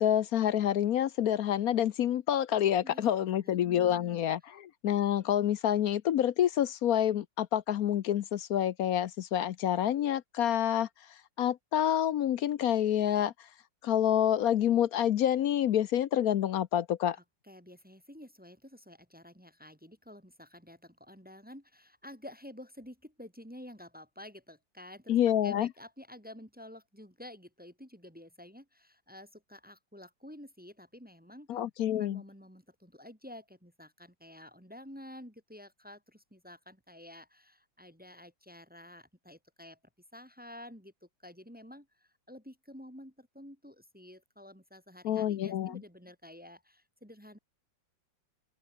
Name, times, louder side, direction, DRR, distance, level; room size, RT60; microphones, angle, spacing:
voice 1, 0.0-10.9 11.4-13.3 13.8-17.2 25.1-25.7 31.5-32.2 45.0-45.8, left 10 dB, 65° left, 1.0 m, -28 dB
voice 2, 2.8-4.2 17.2-25.2 25.4-31.6 32.0-39.8 40.1-47.4, left 1 dB, 5° right, 2.0 m, -50 dB
open air
omnidirectional pair, 2.0 m